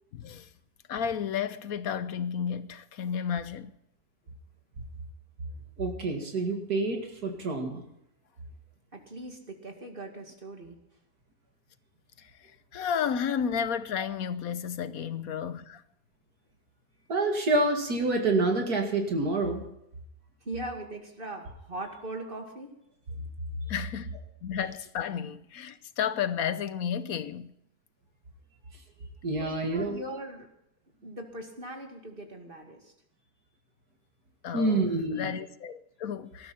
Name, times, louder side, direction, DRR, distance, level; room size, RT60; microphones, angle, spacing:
voice 1, 0.1-0.5 0.9-3.7 12.2-12.3 12.7-15.8 23.7-27.5 34.4-34.8 35.1-36.5, left 8 dB, 70° left, 1.2 m, -32 dB
voice 2, 5.8-7.8 17.1-19.6 29.2-30.0 34.5-35.3, right 2 dB, 75° right, 2.7 m, -27 dB
voice 3, 8.9-10.8 20.5-22.7 29.4-30.5 31.0-32.9, right 1 dB, 35° right, 2.3 m, -40 dB
19.0 x 13.0 x 4.3 m
omnidirectional pair, 1.7 m